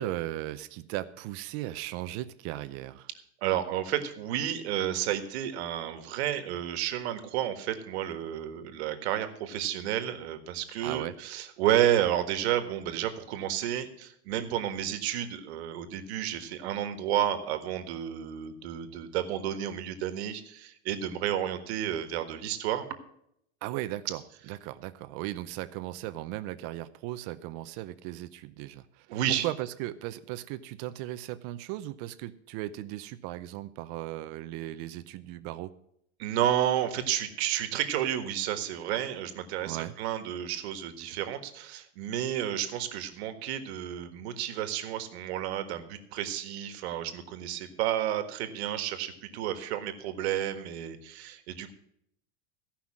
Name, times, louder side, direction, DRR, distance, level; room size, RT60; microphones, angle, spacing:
voice 1, 0.0-3.1 10.8-11.1 23.6-35.7 39.6-39.9, right 15 dB, 50° right, 13 dB, 0.7 m, -37 dB
voice 2, 3.4-22.8 29.1-29.5 36.2-51.7, right 11 dB, 70° right, 9 dB, 1.6 m, -31 dB
16.0 x 5.8 x 7.3 m, 0.73 s
supercardioid pair, 140°, 34 cm